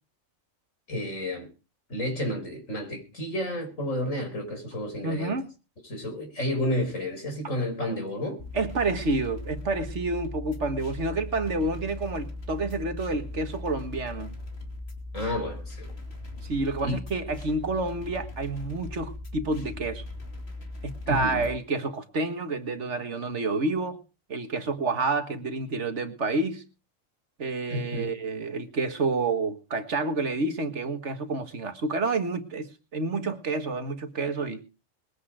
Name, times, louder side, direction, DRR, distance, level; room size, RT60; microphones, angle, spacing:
voice 1, 0.9-1.5 1.9-5.4 5.8-8.4 15.1-15.9 16.8-17.0 21.1-21.5 27.7-28.1, left 1 dB, 80° left, 6.0 m, -31 dB
voice 2, 5.0-5.5 8.5-14.3 16.4-20.0 20.8-24.0 24.3-26.6 27.4-34.6, right 3 dB, 65° right, 1.9 m, -29 dB
sound 1, 8.4-21.5, left 2 dB, 55° left, 3.1 m, -39 dB
21.5 x 8.5 x 5.0 m
omnidirectional pair, 1.3 m